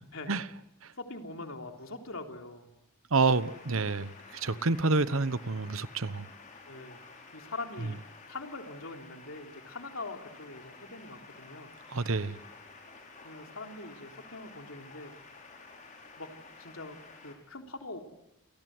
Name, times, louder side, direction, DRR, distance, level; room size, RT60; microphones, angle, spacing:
voice 1, 1.0-2.7 4.5-4.8 6.7-7.0 7.3-8.0 8.3-11.7 13.2-15.1 16.2-16.3 16.6-18.0, left 2 dB, 75° left, 3.6 m, -43 dB
voice 2, 3.1-6.3 11.9-12.4, right 3 dB, 75° right, 1.1 m, -28 dB
sound 1, 3.3-17.4, left 4 dB, 40° left, 5.9 m, -51 dB
29.5 x 25.0 x 7.9 m
head